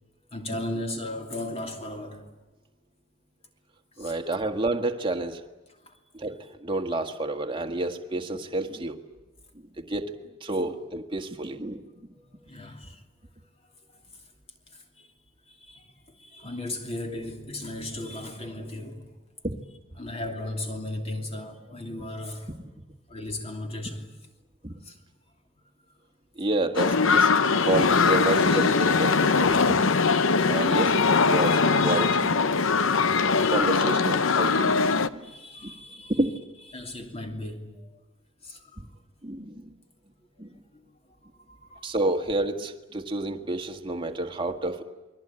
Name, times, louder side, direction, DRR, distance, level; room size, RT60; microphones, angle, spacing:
voice 1, 0.3-2.3 4.0-4.1 5.8-6.0 12.1-13.0 13.9-14.0 14.7-15.1 15.5-19.1 20.0-22.5 23.1-24.1 24.8-25.0 35.1-36.2 36.7-37.9 38.4-38.9 40.7-40.8 41.3-41.9, left 1 dB, 25° left, 2.8 m, -36 dB
voice 2, 4.0-5.4 6.1-6.3 6.6-9.0 9.8-11.9 18.6-18.7 19.4-19.6 24.6-24.7 26.3-27.3 27.6-29.9 30.4-32.6 33.5-34.8 35.1-35.3 35.6-35.7 36.1-36.3 38.8-38.9 39.2-39.7 40.4-40.6 41.8-44.8, right 2 dB, 20° right, 1.6 m, -29 dB
sound 1, 26.8-35.1, left 4 dB, 65° left, 0.8 m, -21 dB
28.5 x 21.5 x 8.9 m
head